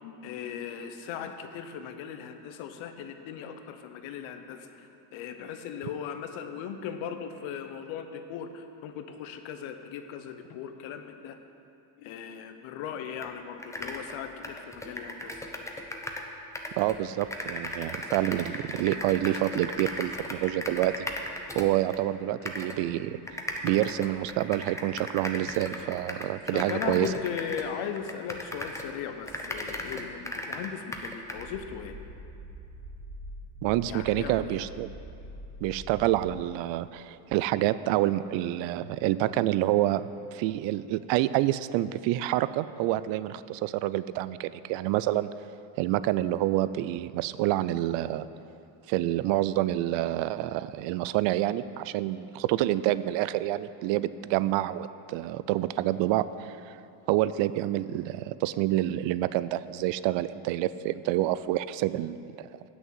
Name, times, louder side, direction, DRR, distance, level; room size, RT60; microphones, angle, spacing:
voice 1, 0.0-11.4 12.0-15.4 26.5-31.9 33.9-34.6, left 8 dB, 70° left, 7 dB, 0.9 m, -38 dB
sound 1, 13.2-13.3 13.6-16.3 16.5-22.0 22.5-22.8 23.3-28.9 29.3-31.5, left 1 dB, 5° left, 0.8 m, -37 dB
voice 2, 16.8-21.1 21.5-23.2 23.6-27.1 33.6-34.9 35.6-45.3 45.8-48.3 48.9-56.8 57.1-62.5, right 14 dB, 65° right, 15 dB, 0.5 m, -28 dB
sound 2, 31.4-36.3, equal, 80° right, 1.2 m, -44 dB
8.0 x 6.4 x 7.3 m, 2.7 s
supercardioid pair, 90°, 48 cm